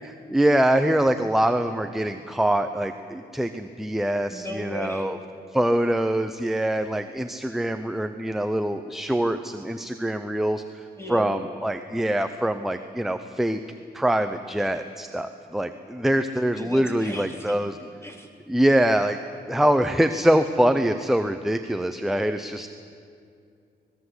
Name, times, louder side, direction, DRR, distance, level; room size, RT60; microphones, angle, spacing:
voice 1, 0.0-5.2 5.5-13.6 13.9-17.8 18.5-19.2 19.5-22.7, right 1 dB, ahead, 8 dB, 0.7 m, -24 dB
voice 2, 4.3-5.1 11.0-11.4 16.5-18.3, equal, 15° left, 1 dB, 3.4 m, -36 dB
25.0 x 19.0 x 8.1 m, 2.4 s
wide cardioid pair, 165°, 17 cm